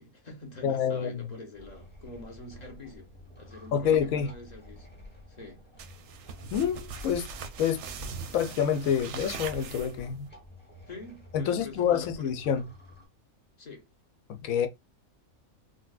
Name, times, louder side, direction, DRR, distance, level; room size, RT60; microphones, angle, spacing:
voice 1, 0.0-3.1 3.4-4.9 5.3-5.6 10.9-12.3 13.6-13.9, left 2 dB, 35° left, 0.9 m, -45 dB
voice 2, 0.6-1.3 3.7-4.3 6.5-7.3 7.6-7.9 8.3-10.3 11.3-12.6 14.3-14.7, left 8 dB, 75° left, 1.0 m, -27 dB
sound 1, 1.5-13.1, left 1 dB, 10° left, 0.9 m, -49 dB
sound 2, 5.8-10.3, right 6 dB, 65° right, 0.8 m, -42 dB
3.9 x 2.2 x 2.3 m
omnidirectional pair, 1.5 m